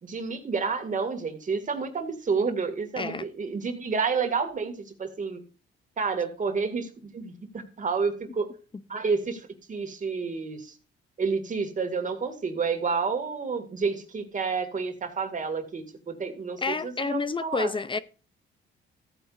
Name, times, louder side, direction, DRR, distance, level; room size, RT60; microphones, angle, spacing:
voice 1, 0.0-4.7 5.0-5.4 6.0-8.5 8.9-10.7 11.2-17.7, right 5 dB, 40° right, 2.2 m, -30 dB
voice 2, 3.0-3.3 16.6-18.0, left 4 dB, 25° left, 0.6 m, -29 dB
14.0 x 9.0 x 2.6 m
cardioid pair, 90°, 20 cm